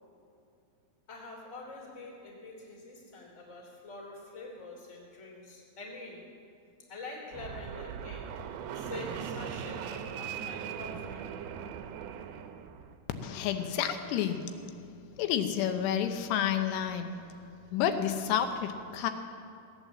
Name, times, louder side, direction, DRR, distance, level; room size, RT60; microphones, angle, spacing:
voice 1, 1.1-6.3 6.9-8.3 8.7-11.3, left 3 dB, 20° left, -1 dB, 2.7 m, -45 dB
Fixed-wing aircraft airplane, 7.3-13.0, right 8 dB, 80° right, 2.5 m, -39 dB
voice 2, 13.2-14.4 15.2-17.1 17.7-19.1, left 9 dB, 85° left, 7 dB, 3.0 m, -30 dB
17.0 x 9.0 x 7.3 m, 2.5 s
omnidirectional pair, 4.8 m